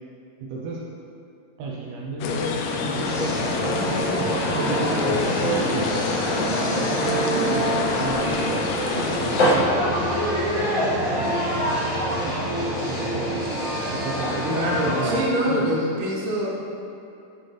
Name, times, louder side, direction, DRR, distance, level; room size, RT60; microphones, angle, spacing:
voice 1, 0.4-0.8 1.6-5.9 6.3-7.7 8.0-11.6 12.2-13.5 13.8-15.9, right 2 dB, 90° right, -3 dB, 2.1 m, -34 dB
sound 1, 2.2-9.6, left 4 dB, 90° left, 2.2 m, -27 dB
sound 2, 3.0-15.2, equal, 75° left, 1.0 m, -25 dB
voice 2, 7.0-7.5 14.4-16.5, equal, 70° right, -4 dB, 2.2 m, -25 dB
9.9 x 4.2 x 3.3 m, 2.7 s
omnidirectional pair, 5.2 m